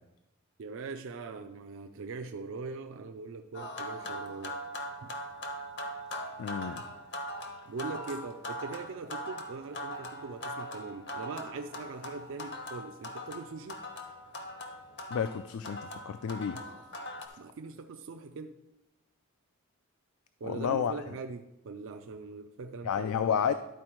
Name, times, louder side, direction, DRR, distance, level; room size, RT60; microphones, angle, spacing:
voice 1, 0.6-4.6 5.0-5.1 7.7-13.8 17.4-18.6 20.4-23.1, right 4 dB, 60° right, 5 dB, 0.4 m, -41 dB
sound 1, 3.5-17.3, equal, 55° left, 0.9 m, -41 dB
voice 2, 6.4-6.8 15.1-16.6 20.4-20.9 22.8-23.5, left 7 dB, 70° left, 11 dB, 0.3 m, -30 dB
11.5 x 4.3 x 4.4 m, 0.95 s
head